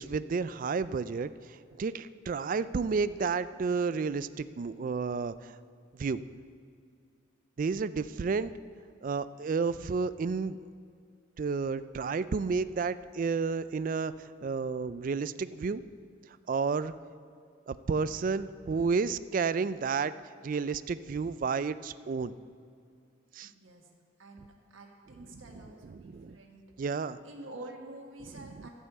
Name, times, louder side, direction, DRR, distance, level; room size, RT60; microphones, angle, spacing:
voice 1, 0.0-5.5 5.9-6.2 7.6-8.5 9.0-10.6 11.4-15.8 16.5-16.9 17.7-20.1 20.4-22.3 23.3-23.5 25.8-26.4 26.8-27.2 28.4-28.5, right 5 dB, 45° right, 15 dB, 0.3 m, -31 dB
voice 2, 23.4-23.9 24.2-26.7 27.2-28.7, right 2 dB, 80° right, 1 dB, 1.5 m, -48 dB
12.5 x 5.6 x 8.1 m, 2.3 s
head